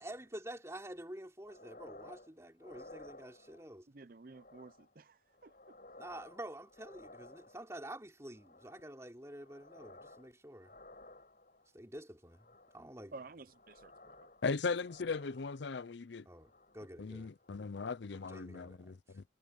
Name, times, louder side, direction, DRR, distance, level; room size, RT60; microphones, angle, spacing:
voice 1, 0.0-3.9 6.0-10.7 11.7-12.5 12.7-13.1 16.2-17.3 18.1-19.0, right 1 dB, 15° right, 3.2 m, -48 dB
sound 1, 1.5-2.3 2.6-3.8 4.3-4.9 5.3-7.8 8.3-8.9 9.3-10.3 10.6-11.7 12.3-12.9 13.3-15.8 16.3-16.9 17.3-17.5, left 2 dB, 45° left, 7.9 m, -57 dB
voice 2, 3.9-5.5 13.1-14.2, right 3 dB, 45° right, 0.7 m, -52 dB
voice 3, 14.4-16.3 17.0-19.2, left 4 dB, 70° left, 0.6 m, -38 dB
head